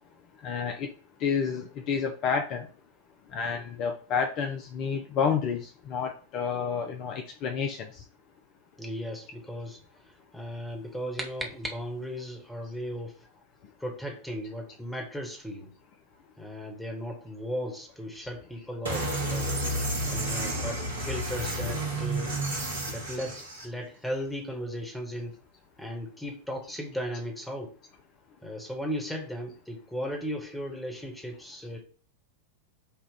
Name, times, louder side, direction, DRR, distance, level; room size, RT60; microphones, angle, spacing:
voice 1, 0.4-0.9 1.2-2.7 3.3-7.9 18.2-18.3, left 6 dB, 40° left, 4 dB, 0.5 m, -30 dB
voice 2, 8.8-13.1 13.8-15.7 16.4-19.5 20.0-22.4 22.9-25.4 25.8-27.7 28.4-31.8, equal, 5° left, 1 dB, 1.3 m, -36 dB
sound 1, 10.7-12.3, right 2 dB, 10° right, 0.8 m, -40 dB
sound 2, 18.8-23.7, right 1 dB, 70° right, 1.3 m, -31 dB
5.5 x 2.4 x 3.8 m, 0.41 s
figure-of-eight pair, 90°, 0 cm